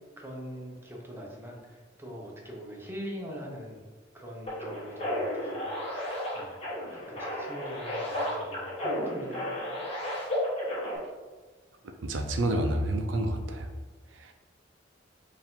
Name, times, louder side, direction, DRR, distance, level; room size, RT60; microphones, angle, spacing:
voice 1, 0.2-3.8 4.1-5.7 6.0-6.1 6.3-6.6 6.9-9.4, equal, 10° right, -2 dB, 0.7 m, -42 dB
sound 1, 4.5-11.0, equal, 30° left, 1.2 m, -33 dB
voice 2, 12.0-13.7 14.1-14.3, right 1 dB, 80° right, 5 dB, 0.5 m, -29 dB
4.7 x 2.6 x 3.6 m, 1.3 s
head